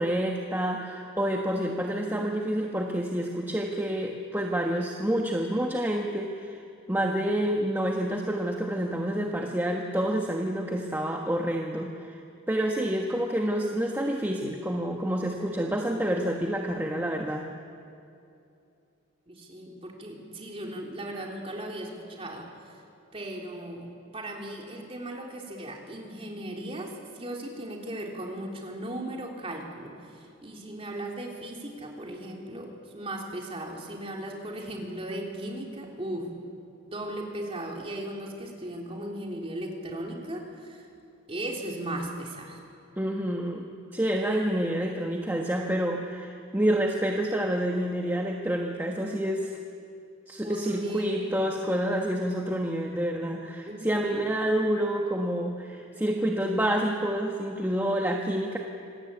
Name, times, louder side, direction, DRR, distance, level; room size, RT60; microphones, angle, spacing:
voice 1, 0.0-6.6 6.9-12.2 12.5-17.5 43.0-49.5 50.3-58.6, right 1 dB, 10° right, 0 dB, 1.3 m, -28 dB
voice 2, 19.3-22.5 23.1-23.9 24.1-36.3 36.9-40.8 41.3-42.6 50.4-51.4 53.7-54.3, right 1 dB, 30° right, 0 dB, 3.4 m, -37 dB
26.5 x 19.0 x 8.5 m, 2.6 s
head